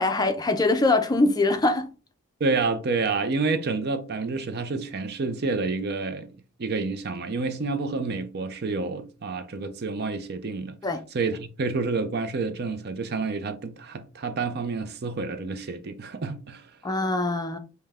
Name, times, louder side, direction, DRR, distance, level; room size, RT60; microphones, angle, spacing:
voice 1, 0.0-1.9 10.8-11.0 16.8-17.6, left 2 dB, 15° left, 0.4 m, -23 dB
voice 2, 2.4-6.3 6.6-10.8 11.1-16.7, right 4 dB, 45° right, 0.5 m, -29 dB
5.5 x 2.2 x 3.4 m
head